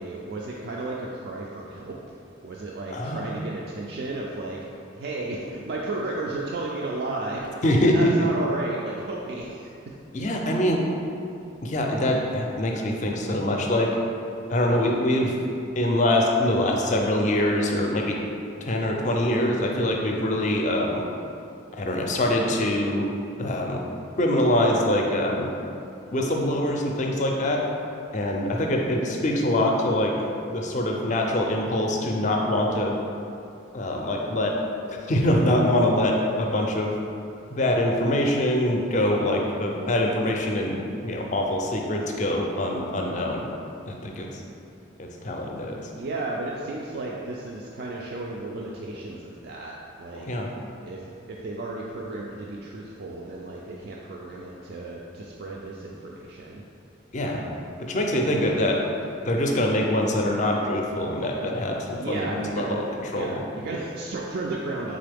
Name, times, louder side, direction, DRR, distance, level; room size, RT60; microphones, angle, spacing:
voice 1, 0.0-2.0 2.4-4.6 4.9-7.5 7.8-10.0 45.9-49.7 50.0-50.3 50.8-51.0 51.3-56.6 57.2-57.6 58.2-58.5 61.9-65.0, right 2 dB, 55° right, -3 dB, 0.3 m, -33 dB
voice 2, 2.9-3.3 7.6-8.1 10.1-10.8 11.6-13.9 14.5-15.3 15.8-18.2 18.6-21.0 21.7-23.1 23.4-23.8 24.2-25.5 26.1-27.6 28.1-30.1 30.5-33.0 33.7-34.6 34.9-36.9 37.5-43.4 43.9-44.4 45.0-45.8 50.3-50.5 57.1-57.4 57.8-58.8 59.3-63.4, left 1 dB, 35° left, 0 dB, 0.4 m, -24 dB
4.0 x 3.8 x 3.4 m, 2.6 s
head